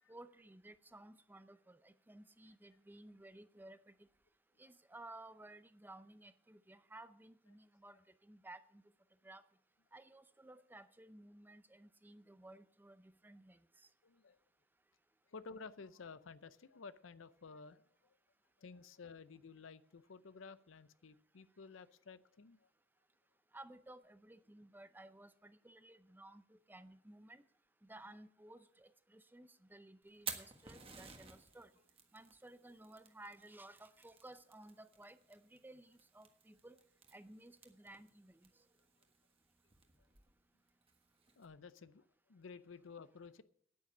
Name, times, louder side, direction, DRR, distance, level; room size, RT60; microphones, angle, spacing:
voice 1, 0.1-4.1 4.6-8.8 9.2-9.4 9.9-13.9 23.5-27.4 27.8-31.7 32.1-36.8 37.1-38.5, right 1 dB, 10° right, 12 dB, 0.6 m, -57 dB
voice 2, 14.0-14.4 15.3-18.2 18.6-22.7 41.4-43.4, left 4 dB, 85° left, 15 dB, 0.6 m, -54 dB
Fire, 30.0-41.4, right 6 dB, 30° right, 1.5 m, -54 dB
9.4 x 9.2 x 7.2 m, 0.66 s
head